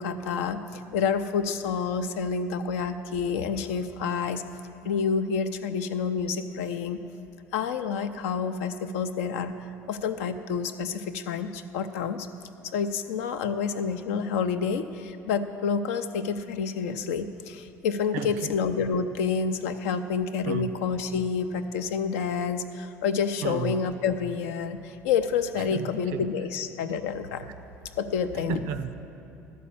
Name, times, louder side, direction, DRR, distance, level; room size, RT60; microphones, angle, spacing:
voice 1, 0.0-4.4 4.8-7.0 7.5-9.6 9.9-12.3 12.6-27.5 28.0-28.6, left 6 dB, 75° left, 9 dB, 0.5 m, -28 dB
voice 2, 18.1-18.5 20.5-20.7 23.4-23.7 25.7-26.2 28.5-28.9, right 8 dB, 75° right, 10 dB, 0.5 m, -33 dB
12.5 x 4.3 x 7.1 m, 2.8 s
hypercardioid pair, 65°, 8 cm